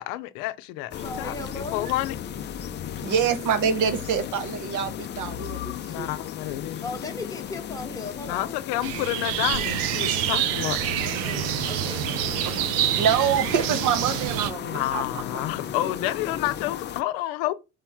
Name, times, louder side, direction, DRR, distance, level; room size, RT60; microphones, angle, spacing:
voice 1, 0.0-0.9 1.2-2.1 5.8-6.9 8.2-10.8 14.6-17.5, left 15 dB, 90° left, 0.6 m, -29 dB
sound 1, 0.9-17.0, left 10 dB, 30° left, 0.4 m, -35 dB
voice 2, 1.0-1.9 6.8-8.6 11.0-12.5, left 2 dB, 10° left, 1.0 m, -37 dB
voice 3, 3.0-6.1 12.5-12.7 12.9-15.0 15.3-15.4, right 7 dB, 55° right, 0.8 m, -26 dB
sound 2, 8.8-14.5, right 11 dB, 80° right, 0.5 m, -27 dB
4.9 x 3.0 x 3.5 m
cardioid pair, 105°, 35 cm